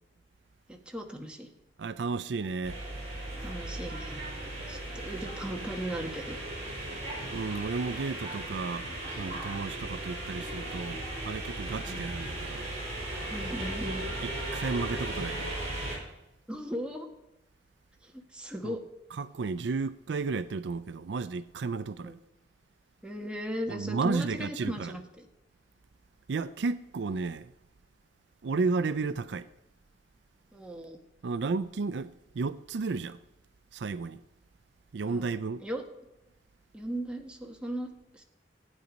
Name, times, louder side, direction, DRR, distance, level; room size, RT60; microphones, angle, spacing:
voice 1, 0.7-1.5 3.4-4.2 4.7-6.4 11.7-12.0 13.3-14.0 16.5-17.1 18.0-18.8 22.0-22.2 23.0-25.3 30.5-31.0 35.0-35.8 36.7-38.2, equal, 5° right, 1.4 m, -37 dB
voice 2, 1.8-2.8 7.2-12.7 14.2-15.6 18.6-18.8 19.1-22.1 23.7-24.9 26.3-27.5 28.4-29.5 31.2-33.2 33.7-34.2 34.9-35.6, right 4 dB, 75° right, 0.4 m, -33 dB
sound 1, 2.6-16.0, right 1 dB, 40° right, 5.3 m, -37 dB
15.0 x 9.2 x 5.2 m
head